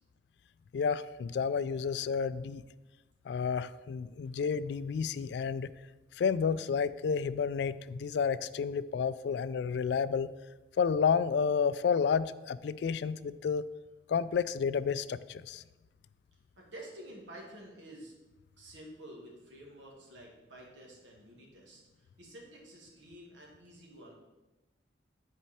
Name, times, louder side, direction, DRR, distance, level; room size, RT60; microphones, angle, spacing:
voice 1, 0.7-2.6 3.3-5.7 6.2-10.3 10.8-13.7 14.1-15.6, left 6 dB, 70° left, 16 dB, 0.3 m, -30 dB
voice 2, 16.6-18.1 18.6-24.1, right 1 dB, 90° right, -2 dB, 2.0 m, -50 dB
10.5 x 4.4 x 4.2 m, 1.1 s
head